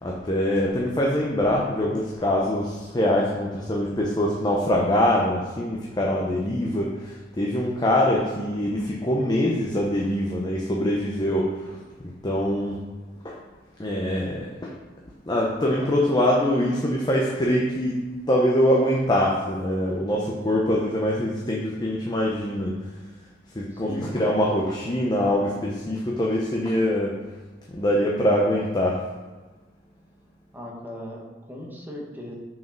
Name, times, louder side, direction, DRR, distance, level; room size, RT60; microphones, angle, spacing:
voice 1, 0.0-11.8 12.2-12.8 13.2-13.4 13.8-14.7 15.3-22.8 23.5-27.2 27.7-29.0, left 1 dB, 25° left, -2 dB, 0.8 m, -24 dB
voice 2, 23.7-24.2 30.5-32.4, left 1 dB, 10° right, -2 dB, 1.3 m, -38 dB
6.4 x 4.9 x 5.2 m, 1.3 s
head